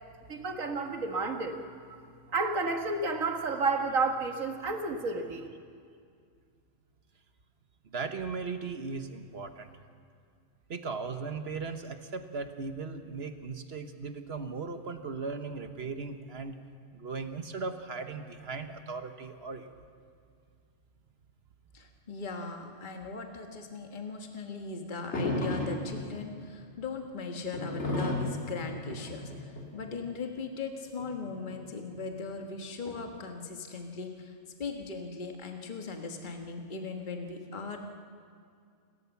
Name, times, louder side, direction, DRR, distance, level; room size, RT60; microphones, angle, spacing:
voice 1, 0.3-1.6 1.9-2.0 2.3-5.5, right 3 dB, 85° right, 4 dB, 2.1 m, -31 dB
voice 2, 7.9-9.7 10.7-16.6 16.9-19.7, right 4 dB, 55° right, 7 dB, 1.4 m, -37 dB
voice 3, 21.7-34.3 34.6-37.8, left 4 dB, 40° left, 3 dB, 1.6 m, -39 dB
sound 1, 25.1-26.1 27.5-30.0 31.0-32.0, left 2 dB, 55° left, 3.1 m, -33 dB
29.0 x 14.0 x 7.1 m, 2.3 s
omnidirectional pair, 1.4 m